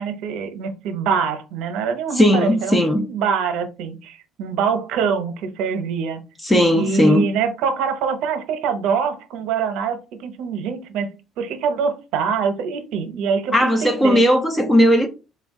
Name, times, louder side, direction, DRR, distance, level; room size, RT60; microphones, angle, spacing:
voice 1, 0.0-6.2 6.7-11.1 11.4-14.2, right 6 dB, 70° right, 0.7 m, -24 dB
voice 2, 2.2-3.1 6.4-7.2 13.5-15.1, equal, 10° left, 0.5 m, -16 dB
4.1 x 2.4 x 3.5 m
cardioid pair, 140°, 0 cm